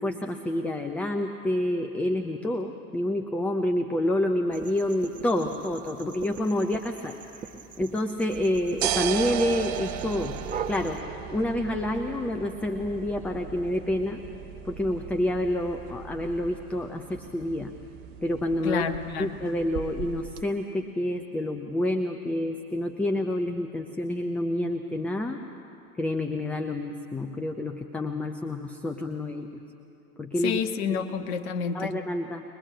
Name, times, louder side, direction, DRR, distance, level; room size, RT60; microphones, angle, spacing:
voice 1, 0.0-7.2 7.8-10.4 10.7-11.0 11.3-14.2 14.6-17.7 18.2-18.8 19.2-25.4 26.0-29.5 30.2-30.6 31.7-32.4, left 1 dB, 5° left, 4 dB, 0.5 m, -28 dB
sound 1, 4.5-11.0, right 6 dB, 15° right, 1.4 m, -41 dB
sound 2, 8.3-20.4, right 9 dB, 45° right, 1.2 m, -36 dB
voice 2, 18.6-19.4 30.4-31.9, left 6 dB, 40° left, 7 dB, 1.5 m, -29 dB
22.0 x 21.5 x 7.7 m, 2.7 s
figure-of-eight pair, 105°, 45 cm